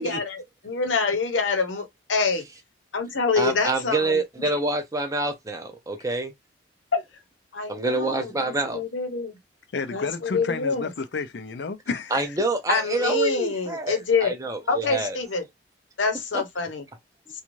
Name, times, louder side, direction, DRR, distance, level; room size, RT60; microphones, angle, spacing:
voice 1, 0.0-2.4 2.9-4.2 6.9-7.0 7.5-9.3 9.9-10.9 12.7-14.3 14.7-15.4 16.0-16.8, left 4 dB, 90° left, 0.8 m, -26 dB
voice 2, 3.4-6.3 7.7-8.8 12.1-15.2 16.3-16.4, right 2 dB, 20° right, 0.5 m, -27 dB
voice 3, 9.7-12.4, left 4 dB, 65° left, 0.5 m, -31 dB
2.6 x 2.3 x 3.0 m
head